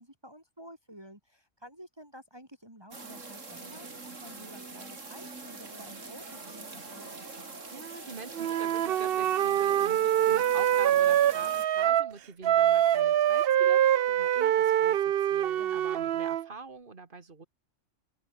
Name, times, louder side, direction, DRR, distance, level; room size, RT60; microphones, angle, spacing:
voice 1, 0.0-7.1 9.9-10.1 15.6-15.8, equal, 20° right, 5.1 m, -51 dB
sound 1, 2.9-11.7, right 3 dB, 90° right, 3.7 m, -44 dB
voice 2, 7.7-17.5, right 4 dB, 45° right, 1.8 m, -45 dB
Wind instrument woodwind instrument, 8.4-12.1 12.4-16.5, right 11 dB, 60° right, 0.7 m, -25 dB
open air
omnidirectional pair, 1.3 m